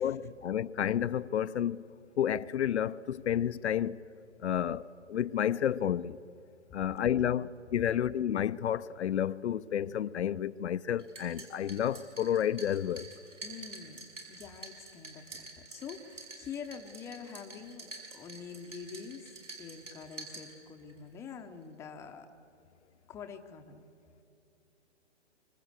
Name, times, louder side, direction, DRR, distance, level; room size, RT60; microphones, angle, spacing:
voice 1, 0.0-1.8 2.2-4.0 4.4-4.8 5.1-6.2 6.7-13.1, left 10 dB, 65° left, 0.6 m, -30 dB
sound 1, 11.0-21.0, right 2 dB, 90° right, 5.8 m, -48 dB
voice 2, 13.4-19.3 19.6-22.3 23.1-23.8, left 6 dB, 5° left, 0.8 m, -46 dB
25.0 x 25.0 x 8.0 m
hypercardioid pair, 145°, 36 cm